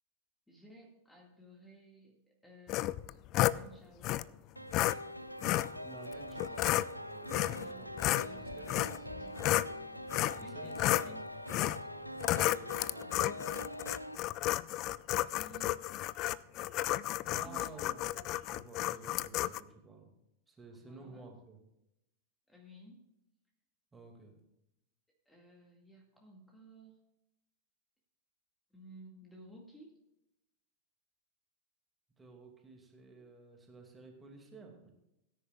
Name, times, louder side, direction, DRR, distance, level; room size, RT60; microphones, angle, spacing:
voice 1, 0.5-3.0 3.3-4.3 4.9-5.2 7.5-9.7 10.4-11.4 13.0-13.8 14.6-14.7 15.2-15.8 17.4-18.1 20.7-21.3 22.5-23.0 25.3-26.9 28.7-29.9, right 1 dB, 5° left, 0 dB, 2.1 m, -56 dB
sound 1, 2.7-3.6 4.0-4.2 4.7-5.0 5.4-5.7 6.4-6.9 7.3-7.7 8.0-9.7 10.1-10.4 10.8-11.1 11.5-11.8 12.2-19.6, left 15 dB, 40° left, 0.3 m, -32 dB
sound 2, 4.6-14.2, equal, 90° right, 0.6 m, -44 dB
voice 2, 5.8-6.7 7.0-7.9 8.3-8.8 10.3-10.8 12.9-13.3 17.3-20.1 20.5-21.6 23.9-24.4 32.2-34.9, right 3 dB, 15° right, 2 dB, 2.4 m, -53 dB
18.0 x 10.0 x 2.4 m, 0.87 s
figure-of-eight pair, 90°, 0 cm